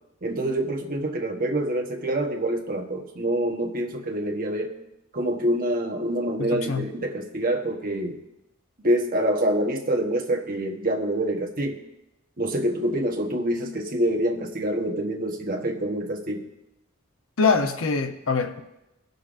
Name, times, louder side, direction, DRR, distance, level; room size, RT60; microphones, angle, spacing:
voice 1, 0.2-4.7 5.1-8.2 8.8-11.8 12.4-16.4, right 1 dB, 45° right, 2 dB, 1.1 m, -26 dB
voice 2, 6.4-6.8 17.4-18.6, left 4 dB, 75° left, 6 dB, 0.8 m, -24 dB
19.5 x 6.6 x 2.6 m, 0.90 s
head